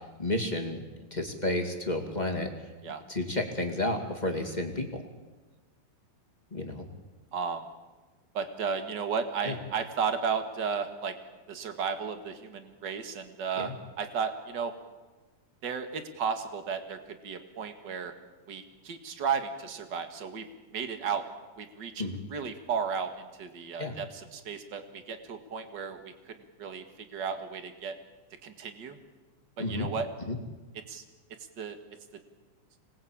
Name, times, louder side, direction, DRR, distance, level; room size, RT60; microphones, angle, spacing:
voice 1, 0.2-0.8 1.1-2.5 3.1-4.9 6.5-6.8 9.4-9.5 13.6-13.7 22.0-22.2 23.8-23.9 29.6-29.9 30.3-30.4, left 1 dB, 15° left, 2 dB, 1.9 m, -31 dB
voice 2, 7.3-7.6 8.3-11.1 11.5-13.7 14.0-14.7 15.6-18.1 18.5-20.5 20.7-21.2 21.6-22.0 22.3-28.0 28.4-29.0 29.6-30.1 30.7-31.0 31.6-31.8, right 6 dB, 40° right, 7 dB, 2.1 m, -34 dB
26.5 x 19.5 x 8.8 m, 1.2 s
omnidirectional pair, 3.7 m